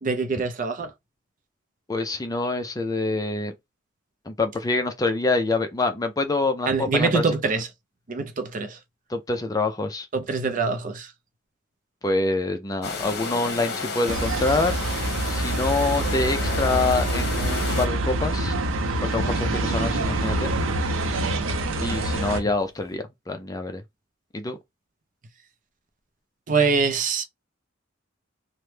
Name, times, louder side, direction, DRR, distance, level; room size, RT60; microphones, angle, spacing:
voice 1, 0.0-0.9 6.7-7.7 8.1-8.8 10.1-11.1 26.5-27.2, right 4 dB, 40° right, 0.5 m, -24 dB
voice 2, 1.9-3.5 4.3-7.2 9.1-10.1 12.0-14.8 15.3-18.6 19.0-20.5 21.8-23.8 24.3-24.6, left 3 dB, 20° left, 0.4 m, -26 dB
sound 1, 12.8-17.9, left 4 dB, 55° left, 0.9 m, -32 dB
sound 2, 14.1-22.4, right 2 dB, 85° right, 0.6 m, -26 dB
sound 3, 16.2-22.9, left 4 dB, 85° left, 0.5 m, -41 dB
2.9 x 2.1 x 3.2 m
head